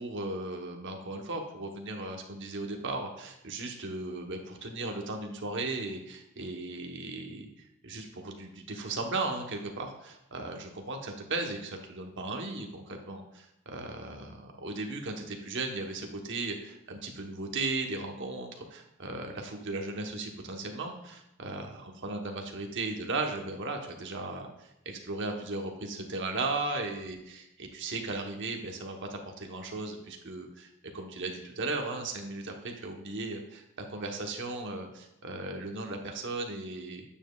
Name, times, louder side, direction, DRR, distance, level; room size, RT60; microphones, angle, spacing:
voice 1, 0.0-33.6 33.9-37.0, right 2 dB, 55° right, 3 dB, 1.1 m, -36 dB
8.8 x 7.2 x 2.3 m, 0.83 s
head